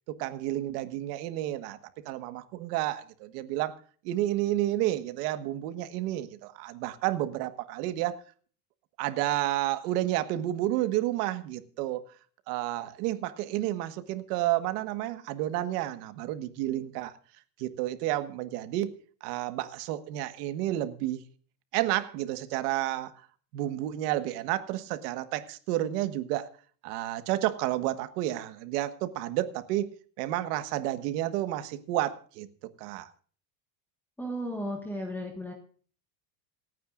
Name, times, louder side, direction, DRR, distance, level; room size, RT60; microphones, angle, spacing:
voice 1, 0.1-1.8 2.0-3.7 4.0-8.2 9.0-12.0 12.5-17.1 17.6-18.9 19.2-21.2 21.7-23.1 23.5-26.5 26.8-29.9 30.2-32.5 32.8-33.1, right 14 dB, 80° right, 1.5 m, -30 dB
voice 2, 34.2-35.5, equal, 5° left, 1.5 m, -34 dB
27.5 x 9.3 x 2.5 m
cardioid pair, 175°, 46 cm